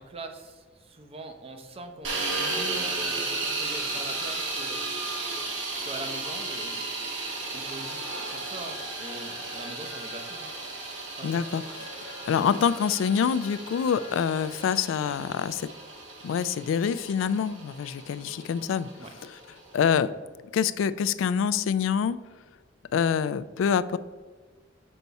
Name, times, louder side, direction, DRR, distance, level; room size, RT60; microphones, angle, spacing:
voice 1, 0.0-4.8 5.8-6.8 7.5-10.5 11.2-11.4 19.0-19.1, right 2 dB, 30° right, 5 dB, 0.6 m, -42 dB
sound 1, 2.0-20.0, right 3 dB, 80° right, 1.2 m, -34 dB
sound 2, 4.0-14.8, left 4 dB, 60° left, 1.0 m, -49 dB
voice 2, 11.2-11.9 12.3-15.7 16.2-18.9 19.7-20.1 20.5-22.2 22.9-24.0, left 7 dB, 90° left, 15 dB, 0.3 m, -26 dB
5.4 x 4.1 x 4.6 m, 1.4 s
head